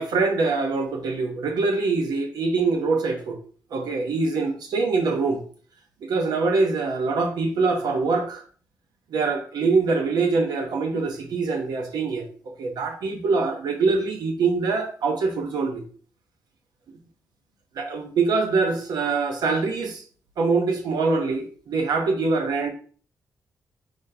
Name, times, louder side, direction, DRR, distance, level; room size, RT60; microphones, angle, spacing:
voice 1, 0.0-3.4 3.7-5.4 6.0-8.4 9.1-12.2 12.6-15.8 17.8-20.0 20.4-22.7, right 4 dB, 80° right, 0.9 m, -24 dB
5.0 x 3.9 x 2.7 m
cardioid pair, 125°, 7 cm